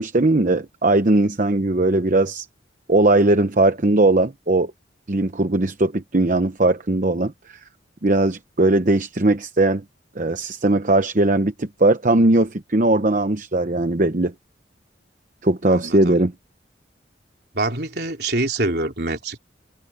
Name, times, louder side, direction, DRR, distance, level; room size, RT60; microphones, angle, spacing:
voice 1, 0.0-2.4 2.9-4.7 5.1-7.6 8.0-9.8 10.2-14.3 15.4-16.3, right 2 dB, 45° right, 0.9 m, -19 dB
voice 2, 15.7-16.2 17.5-19.4, right 2 dB, 60° right, 3.9 m, -25 dB
head